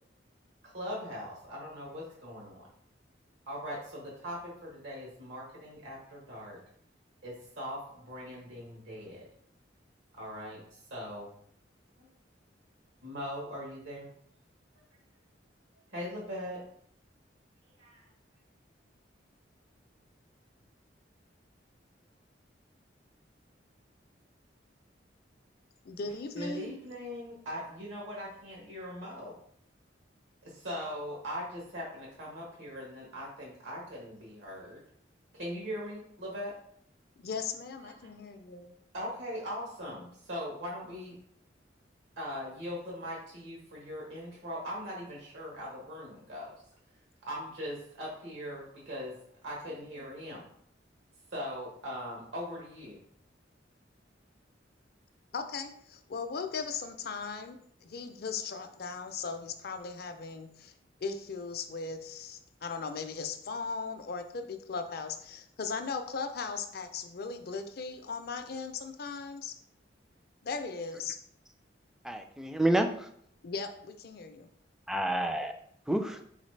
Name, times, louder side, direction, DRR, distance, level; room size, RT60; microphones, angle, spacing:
voice 1, 0.6-2.7 3.5-6.6 7.2-9.3 10.1-11.3 12.0-12.1 13.0-14.1 15.9-16.7 17.8-18.1 26.4-29.3 30.4-34.8 35.3-36.6 37.2-37.3 37.8-38.1 38.4-41.2 42.2-46.6 47.3-49.2 49.4-50.4 51.3-53.0, equal, 80° right, -3 dB, 1.2 m, -40 dB
voice 2, 25.8-26.8 37.2-38.7 55.3-60.7 61.0-69.6 70.4-71.2 73.4-74.5, left 5 dB, 55° left, 7 dB, 0.5 m, -38 dB
voice 3, 72.0-73.1 74.9-75.5 75.9-76.2, right 1 dB, 5° right, 6 dB, 0.3 m, -29 dB
4.0 x 4.0 x 3.2 m, 0.66 s
head